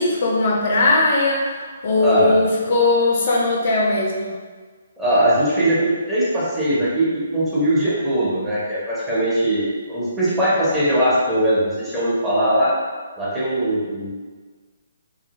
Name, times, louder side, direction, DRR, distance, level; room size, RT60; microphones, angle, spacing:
voice 1, 0.0-1.6 1.8-4.4, left 2 dB, 45° left, -2 dB, 0.4 m, -19 dB
voice 2, 2.0-2.3 5.0-12.7 13.2-14.1, right 1 dB, 5° right, -11 dB, 0.6 m, -20 dB
2.7 x 2.5 x 2.9 m, 1.5 s
hypercardioid pair, 170°, 0 cm